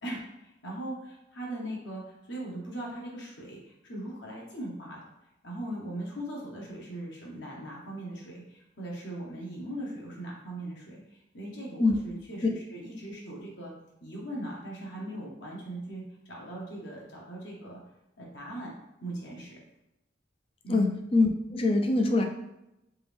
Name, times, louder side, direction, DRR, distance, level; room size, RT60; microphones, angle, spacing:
voice 1, 0.0-5.0 5.4-13.7 14.0-17.8 18.2-18.7 19.0-19.6 20.6-20.9, right 1 dB, 65° left, -3 dB, 1.0 m, -39 dB
voice 2, 20.7-22.3, left 2 dB, 30° left, 4 dB, 0.4 m, -24 dB
3.6 x 3.0 x 3.4 m, 0.88 s
head